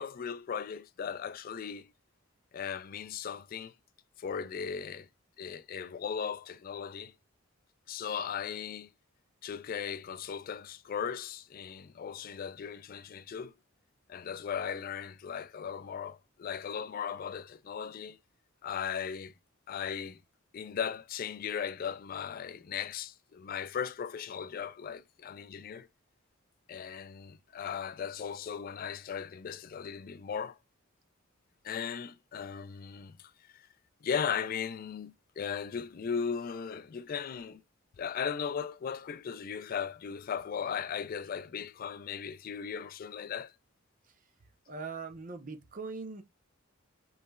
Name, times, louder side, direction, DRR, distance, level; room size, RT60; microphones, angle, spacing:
voice 1, 0.0-1.9 2.5-3.7 4.2-5.1 5.4-7.1 7.9-8.9 9.4-13.5 14.1-18.2 18.6-19.3 19.7-20.2 20.5-25.9 26.7-30.6 31.6-33.6 34.0-37.6 38.0-43.5, left 7 dB, 45° left, 0.3 m, -37 dB
voice 2, 44.7-46.2, right 4 dB, 40° right, 0.7 m, -41 dB
5.1 x 3.2 x 2.3 m
head